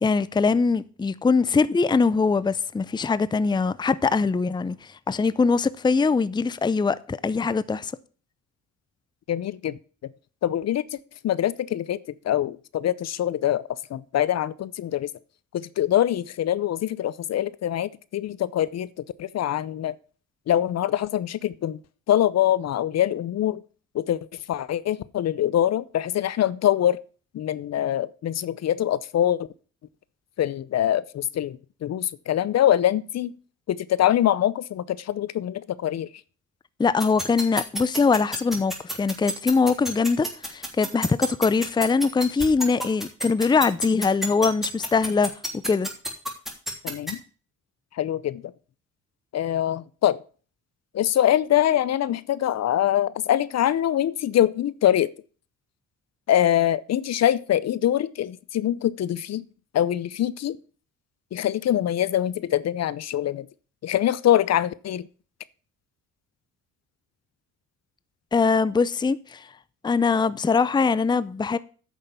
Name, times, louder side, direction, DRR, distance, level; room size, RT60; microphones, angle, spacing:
voice 1, 0.0-7.9 36.8-45.3 45.7-45.9 68.3-69.5 69.8-71.6, left 4 dB, 15° left, 0.5 m, -22 dB
voice 2, 9.3-9.8 10.4-10.8 11.2-12.0 12.2-13.6 13.9-15.1 15.5-18.9 19.2-19.9 20.5-21.8 22.1-23.6 23.9-24.2 24.5-27.0 27.3-29.5 30.4-33.3 33.7-36.1 46.8-47.2 47.9-48.5 49.3-50.2 50.9-55.1 56.3-59.4 59.7-60.6 61.3-63.5 63.8-65.1, left 11 dB, 60° left, 0.7 m, -24 dB
sound 1, 37.0-47.1, equal, ahead, 3.1 m, -28 dB
9.2 x 6.5 x 7.0 m
cardioid pair, 90°, 30 cm